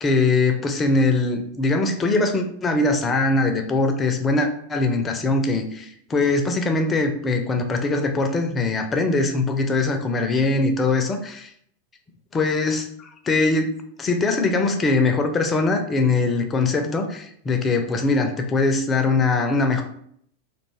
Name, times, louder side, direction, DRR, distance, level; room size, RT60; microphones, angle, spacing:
voice 1, 0.0-11.5 12.3-13.7 14.0-19.8, left 3 dB, 20° left, 5 dB, 0.4 m, -22 dB
2.4 x 2.2 x 3.1 m, 0.68 s
figure-of-eight pair, 90°, 0 cm